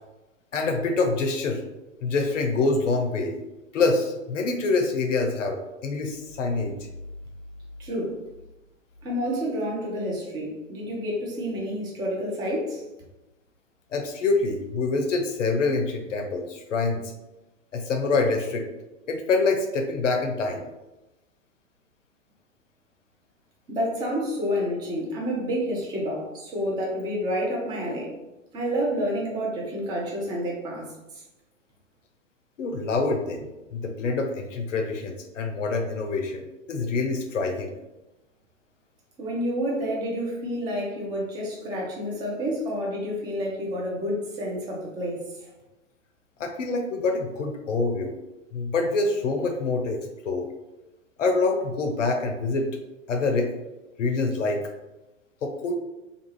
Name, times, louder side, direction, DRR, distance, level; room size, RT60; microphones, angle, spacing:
voice 1, 0.5-1.6 2.0-3.4 3.7-6.7 13.9-17.0 17.7-18.6 19.1-20.6 32.6-33.4 33.7-36.4 36.7-37.7 46.4-48.1 48.5-50.0 50.2-50.5 51.2-52.7 53.1-53.5 54.0-54.6 55.4-55.7, left 3 dB, 70° left, 3 dB, 0.5 m, -25 dB
voice 2, 7.8-8.2 9.0-12.8 23.7-28.1 28.5-31.2 39.2-45.5, equal, 10° right, -2 dB, 0.4 m, -29 dB
2.3 x 2.3 x 3.0 m, 1.0 s
figure-of-eight pair, 100°, 39 cm